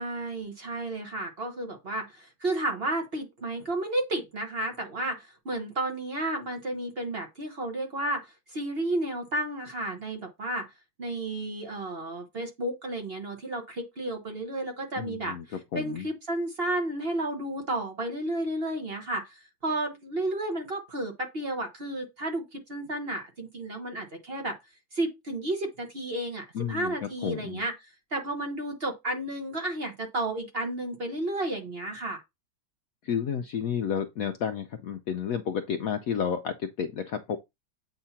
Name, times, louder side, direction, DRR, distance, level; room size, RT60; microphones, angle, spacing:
voice 1, 0.0-10.7 11.0-24.6 24.9-32.2, right 1 dB, 40° right, 1.1 m, -32 dB
voice 2, 15.0-16.1 26.5-27.6 33.0-37.4, left 7 dB, 70° left, 0.9 m, -31 dB
8.1 x 2.8 x 5.7 m
omnidirectional pair, 1.9 m